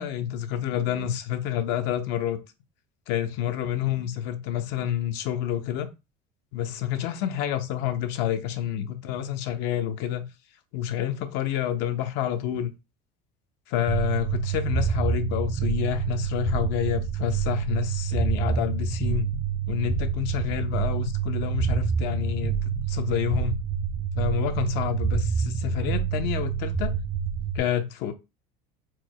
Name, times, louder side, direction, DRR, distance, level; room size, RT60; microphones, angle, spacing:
voice 1, 0.0-2.4 3.1-5.9 6.5-10.3 10.7-12.7 13.7-19.3 19.7-23.6 24.2-26.9 27.5-28.1, left 11 dB, 65° left, 0.8 m, -28 dB
sound 1, 13.9-27.6, right 7 dB, 25° right, 0.5 m, -27 dB
4.6 x 2.2 x 4.7 m
cardioid pair, 145°, 19 cm